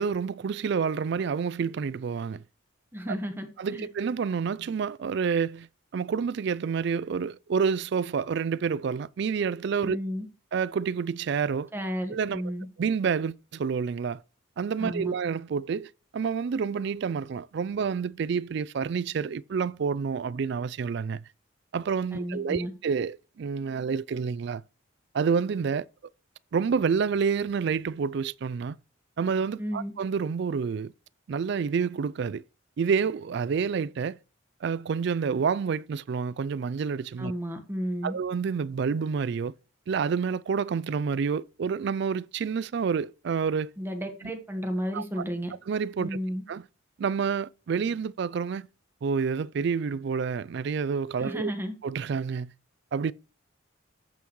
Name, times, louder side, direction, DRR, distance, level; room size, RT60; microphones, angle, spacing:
voice 1, 0.0-2.4 3.6-5.7 5.9-10.0 10.5-11.7 12.1-12.4 12.8-14.2 14.6-21.2 21.7-24.6 25.1-25.9 26.5-28.8 29.2-30.9 31.3-32.4 32.8-34.2 34.6-37.3 38.0-39.5 39.9-43.7 44.9-45.2 45.7-46.1 46.5-46.6 47.0-48.7 49.0-51.5 51.8-52.5 52.9-53.1, right 6 dB, 55° right, 0.3 m, -28 dB
voice 2, 2.9-3.9 9.8-10.3 11.7-12.7 14.8-15.1 22.1-22.7 29.6-29.9 37.2-38.1 43.8-45.5 46.0-46.4 51.2-51.7, equal, 10° right, 1.3 m, -33 dB
14.5 x 5.7 x 3.1 m
head